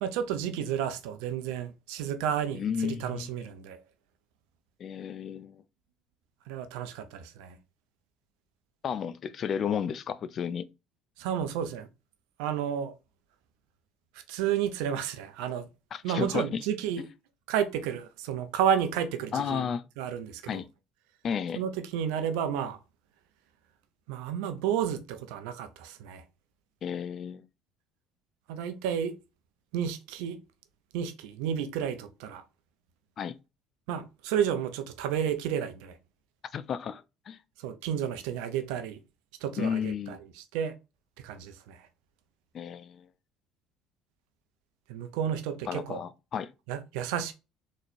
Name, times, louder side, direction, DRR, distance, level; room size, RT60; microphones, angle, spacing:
voice 1, 0.0-3.8 6.5-7.6 11.2-11.9 12.4-12.9 14.3-15.7 16.0-17.0 17.5-19.7 20.0-20.6 21.6-22.8 24.1-26.2 28.5-29.2 29.7-30.4 30.9-32.4 33.9-35.9 37.6-39.0 39.4-40.2 40.5-40.7 41.2-41.8 44.9-46.0 46.7-47.3, right 9 dB, 70° right, 0.6 m, -31 dB
voice 2, 2.5-3.3 4.8-5.6 8.8-10.7 15.9-16.6 19.3-19.8 20.5-20.7 21.2-21.6 26.8-27.5 33.2-33.3 36.5-37.4 39.6-40.2 42.5-43.1 45.7-46.5, left 7 dB, 45° left, 0.4 m, -32 dB
4.0 x 3.1 x 2.6 m
hypercardioid pair, 60°, 0 cm